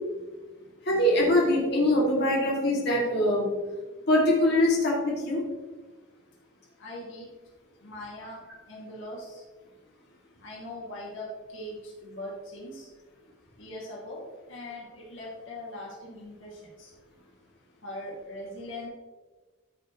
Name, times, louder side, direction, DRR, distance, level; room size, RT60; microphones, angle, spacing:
voice 1, 0.8-3.5 4.1-5.4, left 1 dB, 55° left, -4 dB, 2.7 m, -23 dB
voice 2, 6.8-7.3 7.8-8.4 8.7-9.4 10.4-12.9 13.6-14.2 14.5-16.9 17.8-18.9, left 1 dB, 70° left, -4 dB, 2.5 m, -40 dB
13.5 x 6.9 x 3.2 m, 1.3 s
head